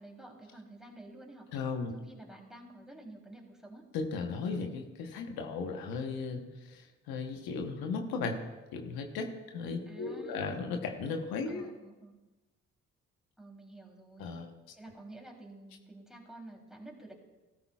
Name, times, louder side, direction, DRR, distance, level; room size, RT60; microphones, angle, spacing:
voice 1, 0.0-1.5 1.9-3.8 9.9-10.6 11.5-12.2 13.4-14.3 14.7-17.1, right 2 dB, ahead, 0 dB, 3.2 m, -50 dB
voice 2, 1.5-1.9 3.9-8.4 8.7-11.7 14.2-14.5, left 4 dB, 85° left, 4 dB, 1.1 m, -36 dB
13.5 x 13.5 x 2.4 m, 1.2 s
supercardioid pair, 45°, 36 cm